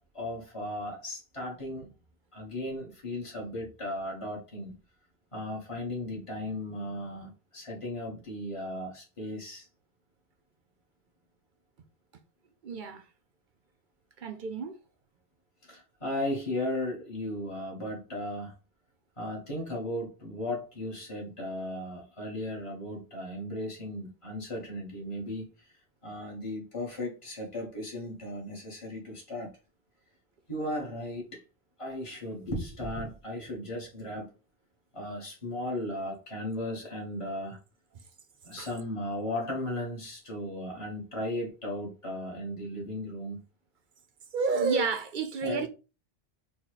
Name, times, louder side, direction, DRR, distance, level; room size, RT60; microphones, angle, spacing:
voice 1, 0.0-1.9 2.3-4.7 5.3-9.7 15.6-18.5 19.2-25.5 26.0-29.5 30.5-31.4 31.8-34.3 34.9-37.6 38.4-43.4 45.4-45.7, left 1 dB, 30° left, 1.5 m, -36 dB
voice 2, 12.6-13.0 14.2-14.8 37.9-38.0 38.6-38.7 44.3-45.7, right 4 dB, 55° right, 0.7 m, -30 dB
4.1 x 2.3 x 4.7 m
omnidirectional pair, 1.1 m